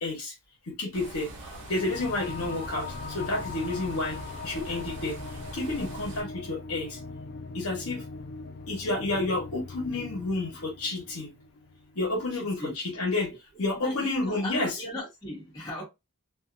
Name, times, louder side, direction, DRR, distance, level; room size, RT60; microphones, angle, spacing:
voice 1, 0.0-0.3 0.6-1.3 1.7-5.2 5.5-7.0 7.5-8.0 8.7-11.3 11.9-13.3 13.6-14.7, left 2 dB, 65° left, 1.1 m, -30 dB
sound 1, 0.9-6.2, right 2 dB, 60° right, 0.9 m, -43 dB
sound 2, 1.5-12.4, left 4 dB, 45° left, 0.3 m, -41 dB
voice 2, 12.3-12.8 13.7-15.8, left 1 dB, 15° left, 1.2 m, -38 dB
2.5 x 2.4 x 2.5 m
head